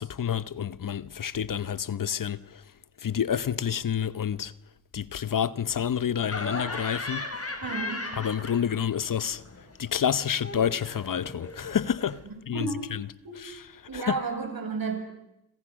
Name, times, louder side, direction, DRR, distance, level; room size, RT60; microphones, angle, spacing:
voice 1, 0.0-2.4 3.0-4.5 4.9-7.3 8.2-9.4 9.8-12.2 12.5-12.7 13.4-13.6 13.9-14.1, left 8 dB, 55° left, 1.0 m, -28 dB
Laughter, 6.2-9.0 9.3-12.2, left 2 dB, 35° left, 6.1 m, -37 dB
voice 2, 7.6-8.1 12.2-12.9 13.2-13.5 13.9-15.0, right 4 dB, 60° right, 7.2 m, -32 dB
26.5 x 26.5 x 6.4 m
cardioid pair, 55°, 39 cm